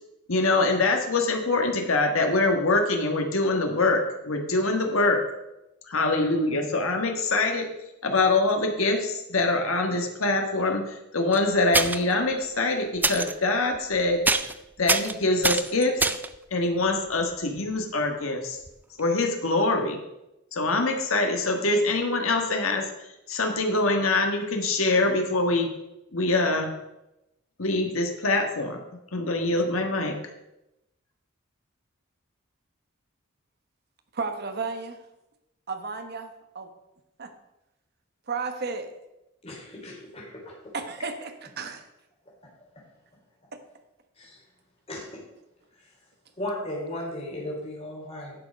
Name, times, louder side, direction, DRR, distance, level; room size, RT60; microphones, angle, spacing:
voice 1, 0.3-5.2 5.9-7.7 8.0-14.2 14.8-16.1 16.5-18.6 19.0-20.0 20.5-22.8 23.3-25.7 26.1-26.7 27.6-28.8 29.1-30.2, left 2 dB, 85° left, 3 dB, 1.5 m, -24 dB
sound 1, 11.3-11.4 11.7-12.1 13.0-13.3 13.7-14.0 14.2-14.5 14.9-16.3 18.7-18.8 19.0-19.1, right 3 dB, 10° right, 0.3 m, -24 dB
voice 2, 34.1-35.0 35.7-36.7 37.2-37.3 38.3-38.9 40.7-41.8, right 4 dB, 50° right, 7 dB, 1.1 m, -33 dB
voice 3, 39.4-40.5 44.2-44.4 44.9-45.1 46.3-48.3, left 1 dB, 30° left, -4 dB, 3.6 m, -35 dB
11.5 x 6.6 x 5.2 m, 0.92 s
head